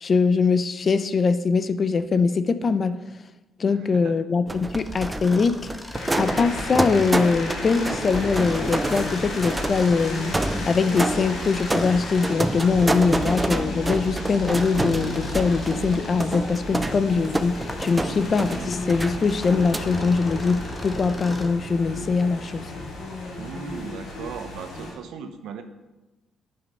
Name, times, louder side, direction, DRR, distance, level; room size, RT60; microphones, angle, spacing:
voice 1, 0.0-3.0 3.6-5.7 6.2-10.3 10.6-22.6, left 4 dB, 40° left, 12 dB, 0.6 m, -22 dB
voice 2, 3.7-4.1 4.6-4.7 23.3-25.6, right 5 dB, 85° right, 7 dB, 0.9 m, -38 dB
sound 1, 4.5-19.8, right 2 dB, 15° right, 0.5 m, -29 dB
Mechanisms, 4.8-12.4 14.3-15.9 16.5-16.6 17.2-21.6, left 1 dB, 10° left, 1.2 m, -40 dB
sound 2, 5.9-24.9, left 2 dB, 90° left, 2.8 m, -33 dB
9.5 x 5.7 x 5.5 m, 1.1 s
cardioid pair, 90°, 0 cm